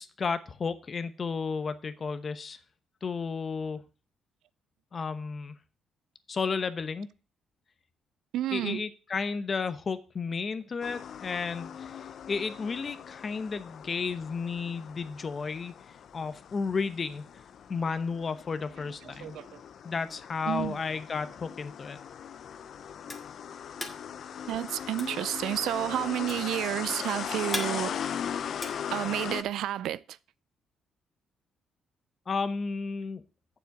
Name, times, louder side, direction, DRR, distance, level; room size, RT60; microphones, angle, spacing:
voice 1, 0.0-2.6 3.0-3.8 4.9-5.6 6.3-7.1 8.5-15.7 16.1-17.2 17.7-19.4 19.8-22.0 32.3-33.2, left 5 dB, 40° left, 0.9 m, -33 dB
voice 2, 8.3-8.8 19.2-19.6 20.5-20.8 24.5-28.0 28.9-30.2, right 12 dB, 80° right, 0.3 m, -31 dB
sound 1, 10.8-29.4, left 8 dB, 60° left, 0.6 m, -39 dB
sound 2, 22.4-29.6, left 2 dB, 15° left, 1.7 m, -41 dB
7.2 x 6.9 x 5.9 m
cardioid pair, 90°, 0 cm